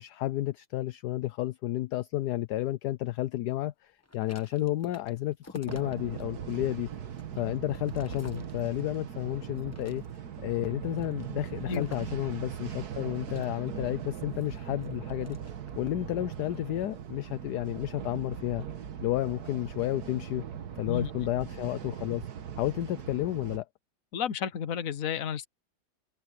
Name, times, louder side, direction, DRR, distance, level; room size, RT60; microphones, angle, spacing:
voice 1, 0.0-6.9 7.3-10.0 10.4-15.4 15.8-18.6 19.0-20.5 20.8-22.3 22.6-23.7, left 15 dB, 70° left, 1.0 m, -31 dB
sound 1, 4.0-6.2 6.7-9.0 9.5-10.4 10.9-12.2 13.2-15.9 16.4-16.7, left 2 dB, 15° left, 0.6 m, -51 dB
sound 2, 5.7-23.6, right 8 dB, 55° right, 1.5 m, -40 dB
voice 2, 24.1-25.4, left 8 dB, 50° left, 1.2 m, -32 dB
omnidirectional pair, 2.1 m